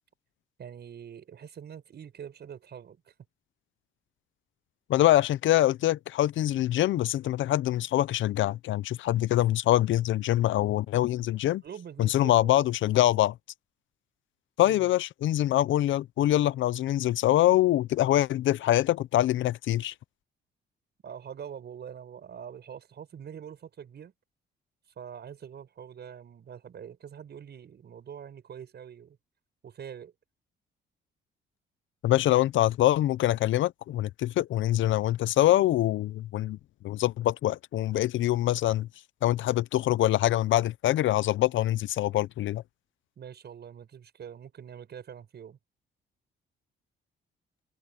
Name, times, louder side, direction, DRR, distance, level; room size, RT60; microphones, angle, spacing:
voice 1, 0.6-3.1 11.6-12.7 14.6-14.9 21.0-24.1 25.0-29.2 29.6-30.1 43.2-45.6, right 8 dB, 55° right, 6.9 m, -44 dB
voice 2, 4.9-11.6 12.0-13.3 14.6-19.9 32.0-36.6 36.8-38.9 39.2-42.6, left 14 dB, 75° left, 0.6 m, -24 dB
cardioid pair, 90°, 20 cm